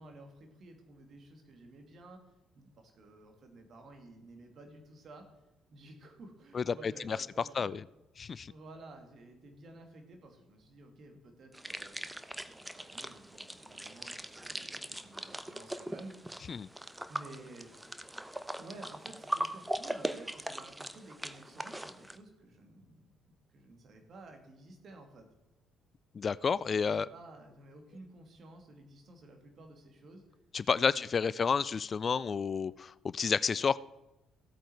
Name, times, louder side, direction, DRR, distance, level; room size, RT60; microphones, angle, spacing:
voice 1, 0.0-2.2 2.5-5.4 5.7-7.7 8.5-16.1 17.1-17.7 18.6-23.1 23.5-25.3 26.7-30.2 30.8-31.1 31.4-31.6, right 2 dB, 50° right, 4 dB, 2.4 m, -53 dB
voice 2, 6.5-7.2 7.6-7.8 8.2-8.5 16.5-16.7 26.1-27.1 30.5-33.8, left 6 dB, 40° left, 20 dB, 0.3 m, -30 dB
sound 1, 11.5-22.2, right 1 dB, 10° right, 0.8 m, -40 dB
15.0 x 8.6 x 4.6 m, 0.97 s
figure-of-eight pair, 45°, 0 cm